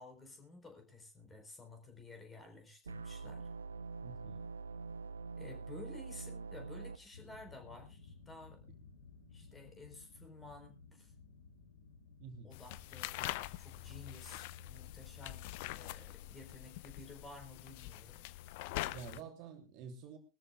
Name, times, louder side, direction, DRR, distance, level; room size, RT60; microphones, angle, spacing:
voice 1, 0.0-3.5 5.4-8.6 9.3-11.1 12.4-13.1 13.6-18.3, left 2 dB, 15° left, 5 dB, 4.4 m, -53 dB
sound 1, 2.8-7.0, right 4 dB, 75° right, 0.9 m, -45 dB
voice 2, 4.0-4.4 12.2-12.5 18.9-20.2, right 6 dB, 40° right, 4 dB, 3.0 m, -49 dB
sound 2, 7.1-16.3, left 4 dB, 65° left, 3.1 m, -58 dB
sound 3, 12.5-19.2, left 16 dB, 50° left, 0.6 m, -44 dB
21.5 x 13.5 x 2.4 m, 0.28 s
figure-of-eight pair, 90°, 0 cm